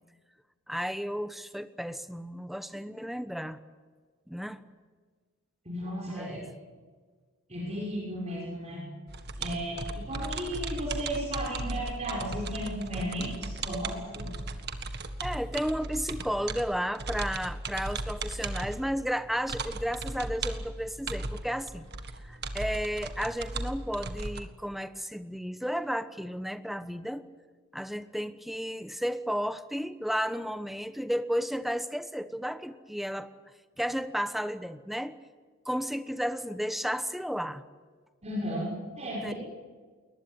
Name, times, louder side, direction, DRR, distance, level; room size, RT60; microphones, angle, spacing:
voice 1, 0.7-3.6 4.3-4.6 6.1-6.6 15.2-21.9 22.2-27.3 27.7-33.3 33.8-35.2 35.7-37.6 39.2-39.3, equal, ahead, 10 dB, 1.0 m, -33 dB
voice 2, 5.7-6.4 7.5-8.9 9.4-14.3 38.2-39.3, equal, 30° right, -2 dB, 5.9 m, -34 dB
sound 1, 9.1-24.4, right 2 dB, 50° right, 1.8 m, -37 dB
21.5 x 20.5 x 9.4 m, 1.5 s
head